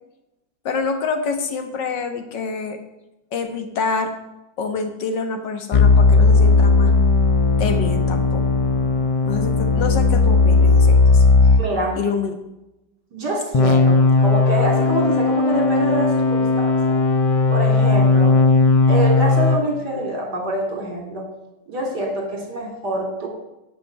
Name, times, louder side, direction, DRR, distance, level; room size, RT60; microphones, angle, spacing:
voice 1, 0.7-2.8 3.3-4.2 4.6-7.0 7.6-8.4 9.3-11.2 12.0-12.4, left 4 dB, 85° left, 6 dB, 2.0 m, -26 dB
sound 1, 5.7-11.7 13.5-19.6, left 3 dB, 45° left, 0.4 m, -16 dB
voice 2, 11.6-12.0 13.1-17.0 17.5-18.4 18.9-21.3 21.7-23.3, right 1 dB, 65° right, 2 dB, 3.3 m, -25 dB
11.5 x 5.8 x 8.9 m, 0.95 s
omnidirectional pair, 1.9 m